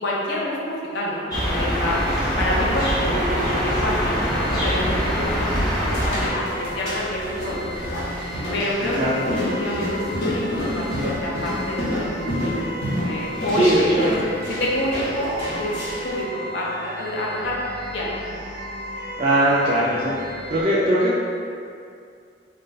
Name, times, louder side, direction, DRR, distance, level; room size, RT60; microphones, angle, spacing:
voice 1, 0.0-2.0 2.4-5.6 5.9-8.0 8.5-10.9 11.2-12.7 13.0-14.1 14.6-15.7 16.0-17.6 17.9-18.3, equal, 65° left, -5 dB, 0.6 m, -27 dB
sound 1, 1.3-6.3, equal, 20° left, 0.7 m, -23 dB
sound 2, 1.8-20.6, equal, 85° right, 0.6 m, -35 dB
sound 3, 5.5-16.2, left 1 dB, 90° left, 1.0 m, -29 dB
voice 2, 8.9-9.2 13.6-14.2 19.2-20.2 20.5-21.2, right 1 dB, 30° right, -8 dB, 0.3 m, -20 dB
2.4 x 2.2 x 3.8 m, 2.4 s
head